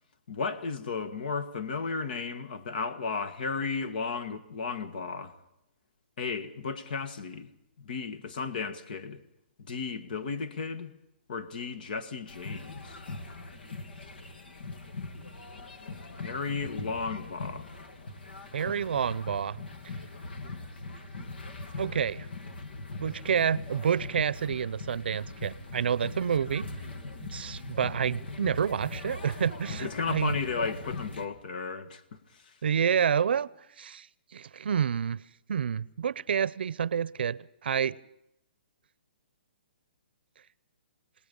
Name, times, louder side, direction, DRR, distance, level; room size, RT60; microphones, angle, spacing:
voice 1, 0.3-5.3 6.2-7.5 7.8-9.2 9.6-10.9 11.3-13.0 16.2-17.7 29.8-32.0 32.3-32.4, left 5 dB, 60° left, 1.7 m, -34 dB
sound 1, 12.3-31.3, left 2 dB, 75° left, 2.5 m, -41 dB
voice 2, 18.5-19.6 21.8-22.3 23.0-26.8 27.3-30.4 32.6-33.5 33.8-34.1 34.3-35.2 35.5-38.0, right 7 dB, 70° right, 0.7 m, -28 dB
27.0 x 19.5 x 5.4 m
hypercardioid pair, 155°, 6 cm